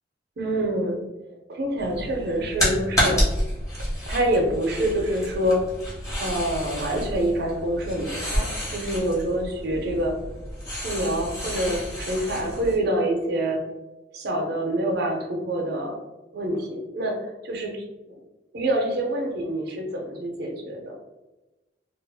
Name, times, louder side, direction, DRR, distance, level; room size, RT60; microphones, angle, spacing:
voice 1, 0.4-1.0 1.5-3.3 4.1-5.7 6.2-10.1 10.7-13.6 14.1-16.0 16.3-18.2 18.5-20.9, right 1 dB, 60° right, 2 dB, 0.6 m, -26 dB
sound 1, 1.8-12.8, equal, 20° left, 1.2 m, -29 dB
2.3 x 2.0 x 3.3 m, 1.1 s
head